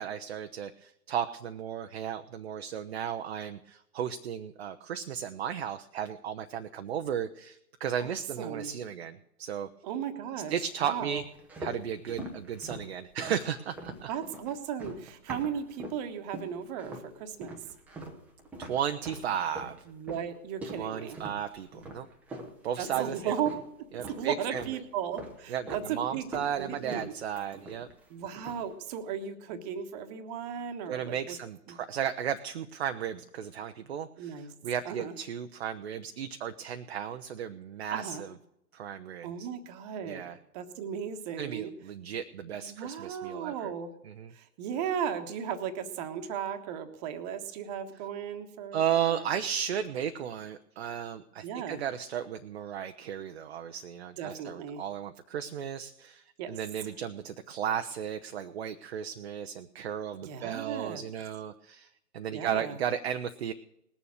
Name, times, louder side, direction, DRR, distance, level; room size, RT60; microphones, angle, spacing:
voice 1, 0.0-9.7 10.5-11.2 11.6-14.1 18.6-19.8 20.8-22.1 22.6-23.3 23.9-24.7 25.5-27.9 30.9-38.3 38.7-39.5 40.0-40.4 41.4-43.7 44.0-44.3 48.7-63.5, right 9 dB, 40° right, 7 dB, 0.7 m, -34 dB
voice 2, 8.4-8.7 9.8-11.2 14.1-17.6 19.9-21.2 22.8-23.5 24.1-26.3 26.6-27.1 28.1-31.4 31.7-31.8 34.2-34.5 34.8-35.1 37.9-38.2 39.2-41.7 42.5-43.9 44.3-49.3 51.4-51.8 54.2-54.8 56.4-56.6 60.2-61.0 62.3-62.8, right 8 dB, 25° right, 9 dB, 1.2 m, -36 dB
sound 1, 11.1-16.0 16.3-17.1 17.4-23.7 24.0-24.8 25.1-25.9 26.2-28.0 28.3-28.7, right 1 dB, 5° right, 0.7 m, -43 dB
19.5 x 7.1 x 6.3 m, 0.83 s
figure-of-eight pair, 130°, 47 cm